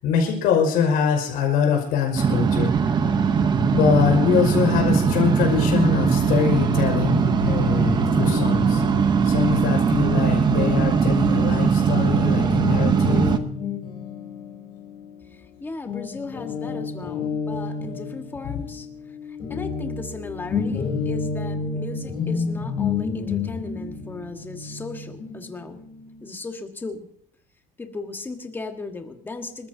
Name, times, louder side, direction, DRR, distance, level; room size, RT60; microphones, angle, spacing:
voice 1, 0.0-3.1 3.7-8.8 9.2-13.3, left 7 dB, 70° left, 1 dB, 5.7 m, -23 dB
sound 1, 2.2-13.4, right 6 dB, 30° right, 0.9 m, -20 dB
Guitar, 7.9-15.5 15.9-26.3, left 5 dB, 30° left, 4.0 m, -31 dB
voice 2, 15.3-18.9 19.5-25.8 26.2-27.1 27.8-29.7, left 3 dB, 15° left, 5 dB, 1.5 m, -36 dB
28.0 x 14.0 x 2.8 m, 0.63 s
cardioid pair, 170°, 16 cm